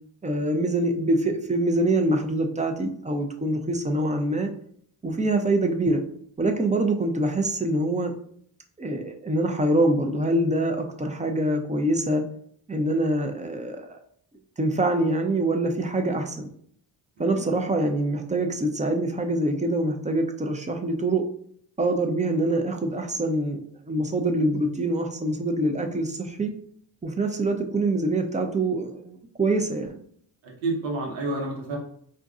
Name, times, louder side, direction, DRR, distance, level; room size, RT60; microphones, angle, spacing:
voice 1, 0.2-4.5 5.0-6.0 6.4-8.1 8.8-12.2 12.7-14.0 14.6-16.5 17.2-21.2 21.8-26.5 27.0-30.0, right 1 dB, 15° right, 5 dB, 0.5 m, -25 dB
voice 2, 30.4-31.8, right 2 dB, 90° right, -1 dB, 1.0 m, -29 dB
3.8 x 2.5 x 2.4 m, 0.63 s
supercardioid pair, 50°, 45 cm